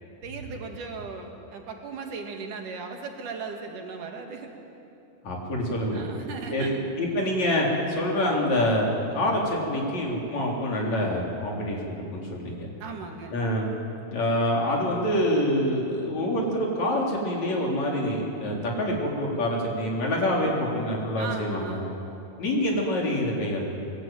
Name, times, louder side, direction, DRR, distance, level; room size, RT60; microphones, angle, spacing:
voice 1, 0.2-4.5 5.9-6.8 12.8-13.4 21.2-21.9, right 5 dB, 75° right, 3 dB, 3.9 m, -37 dB
voice 2, 5.2-6.0 6.5-12.7 13.3-13.7 14.1-21.8 22.4-23.6, left 1 dB, 55° left, -1 dB, 5.0 m, -26 dB
24.0 x 20.5 x 9.3 m, 2.8 s
omnidirectional pair, 3.7 m